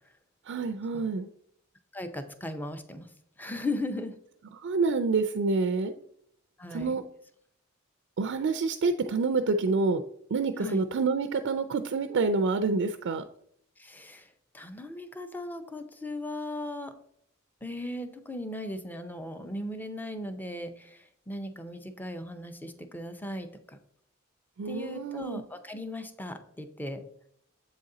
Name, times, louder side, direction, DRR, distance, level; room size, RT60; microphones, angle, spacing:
voice 1, 0.5-1.3 4.6-5.9 6.7-7.0 8.2-10.0 10.3-13.2 24.6-25.4, right 4 dB, 60° right, 8 dB, 0.4 m, -27 dB
voice 2, 1.9-3.1 3.4-4.1 6.6-7.0 10.6-10.8 13.8-14.3 14.5-16.9 17.6-23.8 24.7-27.0, left 1 dB, 10° left, 8 dB, 0.6 m, -37 dB
7.8 x 4.0 x 3.8 m, 0.70 s
head